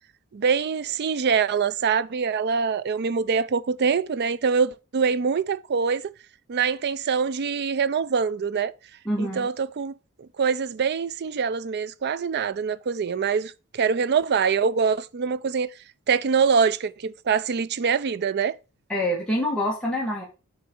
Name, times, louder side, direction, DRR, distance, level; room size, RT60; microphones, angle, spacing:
voice 1, 0.3-6.1 6.5-8.7 9.2-15.7 16.1-18.5, right 6 dB, 50° right, 0.4 m, -24 dB
voice 2, 9.1-9.5 18.9-20.2, equal, 5° left, 1.8 m, -26 dB
7.0 x 4.0 x 6.1 m
head